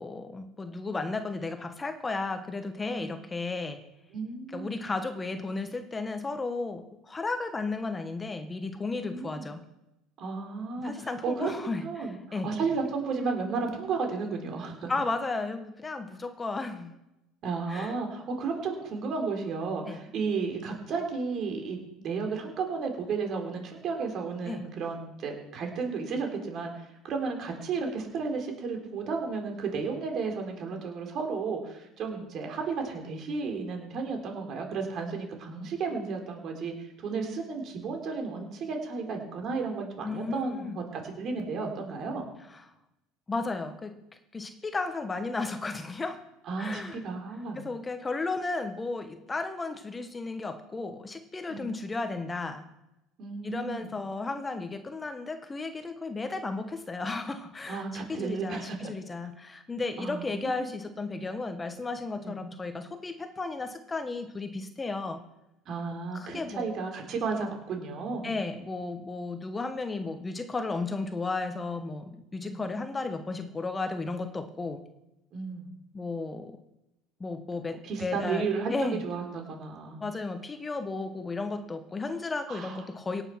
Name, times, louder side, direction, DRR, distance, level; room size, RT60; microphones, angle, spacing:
voice 1, 0.0-3.8 4.5-9.6 10.8-12.5 14.9-16.9 17.7-18.0 19.9-20.0 24.5-24.6 40.0-40.8 42.5-42.6 43.3-44.0 44.3-46.2 46.6-47.0 47.5-52.6 53.4-65.2 66.1-66.8 68.2-74.8 75.9-76.6 77.2-79.0 80.0-83.2, left 3 dB, 20° left, 8 dB, 1.2 m, -34 dB
voice 2, 2.9-3.2 4.1-4.8 9.0-9.5 10.2-14.9 17.4-42.2 46.5-47.6 51.5-51.7 53.2-53.9 57.7-58.9 60.0-60.7 62.2-62.4 65.7-68.3 72.4-72.6 75.3-75.7 77.8-80.0 82.5-82.8, right 4 dB, 50° right, 3 dB, 3.7 m, -33 dB
17.5 x 8.2 x 5.8 m, 0.90 s
supercardioid pair, 105°, 0 cm